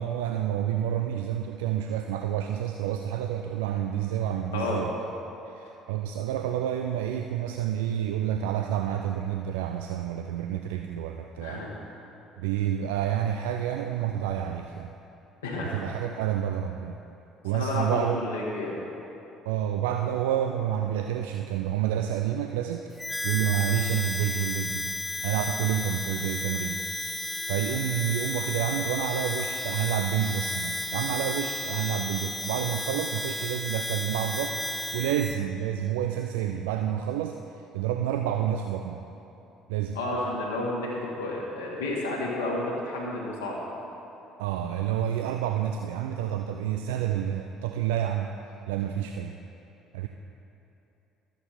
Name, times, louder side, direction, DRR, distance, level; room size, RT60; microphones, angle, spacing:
voice 1, 0.0-4.9 5.4-11.7 12.4-14.9 15.6-17.0 17.4-18.2 19.5-22.9 23.2-24.9 25.2-26.8 27.5-34.6 34.9-39.0 39.7-40.0 44.4-48.3 48.7-49.3 49.9-50.1, right 10 dB, 65° right, 5 dB, 0.3 m, -29 dB
voice 2, 4.5-4.8 11.4-11.7 15.4-15.8 17.5-18.7 39.9-43.6, left 2 dB, 75° left, -4 dB, 1.6 m, -31 dB
Harmonica, 23.0-35.4, left 2 dB, 10° left, 0.5 m, -33 dB
12.5 x 7.9 x 4.3 m, 2.9 s
figure-of-eight pair, 55°, 0 cm